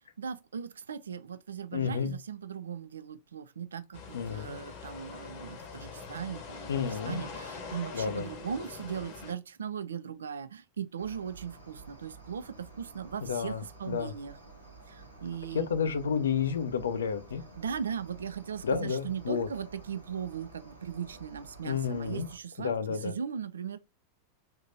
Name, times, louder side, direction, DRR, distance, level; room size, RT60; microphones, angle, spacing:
voice 1, 0.2-14.4 14.9-15.7 17.6-23.8, right 7 dB, 70° right, 0.3 m, -38 dB
voice 2, 1.7-2.1 4.1-4.6 6.7-7.2 7.9-8.3 13.2-14.1 15.5-17.4 18.6-19.5 21.6-22.3 22.6-23.1, left 6 dB, 65° left, 0.4 m, -31 dB
sound 1, 3.9-9.3, left 5 dB, 45° left, 0.8 m, -43 dB
Cricket, 11.0-22.4, right 3 dB, 90° right, 1.1 m, -51 dB
3.5 x 2.7 x 2.6 m
figure-of-eight pair, 90°, 0 cm